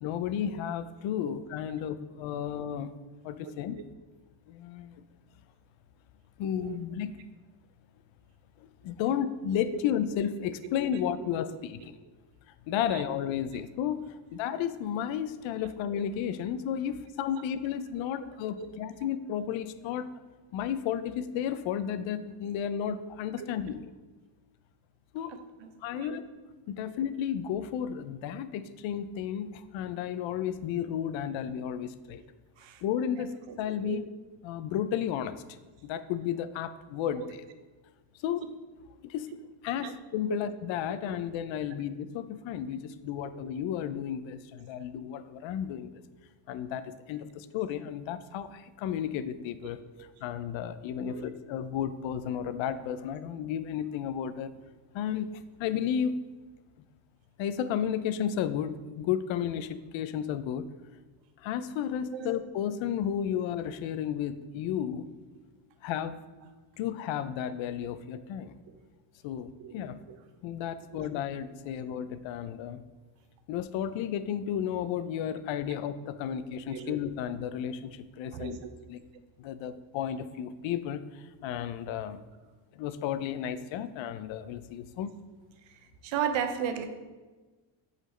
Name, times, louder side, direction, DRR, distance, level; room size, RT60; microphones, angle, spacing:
voice 1, 0.0-2.9 3.2-3.8 4.5-5.0 6.4-7.2 8.6-12.0 12.7-20.1 20.5-23.9 25.1-25.3 25.8-26.3 26.7-32.2 32.8-34.0 34.4-35.4 35.8-37.4 38.2-38.5 39.0-39.3 39.6-46.0 46.5-54.5 54.9-56.2 57.4-60.7 61.4-65.1 65.8-66.2 66.8-68.5 69.2-70.0 70.4-72.8 73.5-78.6 78.9-79.0 79.4-82.2 82.7-85.1, left 9 dB, 80° left, 12 dB, 0.5 m, -33 dB
voice 2, 25.6-26.2 32.6-32.8 33.8-34.1 37.2-37.3 39.8-40.0 50.0-50.1 51.0-51.3 62.1-62.3 69.6-69.8 70.1-70.2 70.9-71.1 76.7-76.9 78.3-78.7 86.0-86.9, right 8 dB, 80° right, 8 dB, 0.7 m, -35 dB
8.0 x 4.0 x 3.2 m, 1.3 s
cardioid pair, 145°, 45 cm